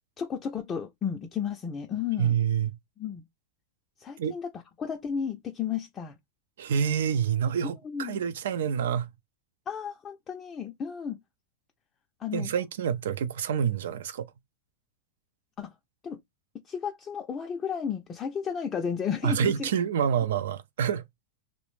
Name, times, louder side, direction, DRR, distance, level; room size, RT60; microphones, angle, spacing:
voice 1, 0.2-2.3 3.0-3.2 4.0-4.5 4.8-6.2 7.8-8.2 9.7-11.2 12.2-12.5 15.6-15.7 16.0-16.2 16.7-19.7, left 7 dB, 20° left, 0.3 m, -33 dB
voice 2, 2.2-2.7 4.2-4.3 6.6-9.1 12.3-14.3 19.2-21.0, right 8 dB, 85° right, 0.4 m, -27 dB
2.5 x 2.0 x 3.1 m
supercardioid pair, 145°, 0 cm